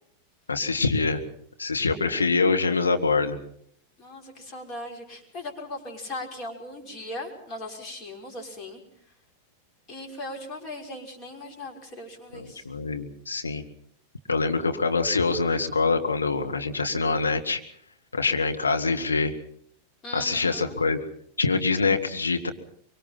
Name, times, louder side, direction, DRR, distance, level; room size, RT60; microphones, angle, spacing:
voice 1, 0.5-1.2 1.6-3.4 12.3-13.6 14.3-17.6 18.1-19.3 20.1-21.0 21.4-22.5, left 4 dB, 80° left, 4 dB, 2.0 m, -25 dB
voice 2, 4.0-8.8 9.9-12.7 20.0-20.8, left 1 dB, 30° left, 2 dB, 5.6 m, -38 dB
24.0 x 24.0 x 5.8 m, 0.66 s
figure-of-eight pair, 90°, 0 cm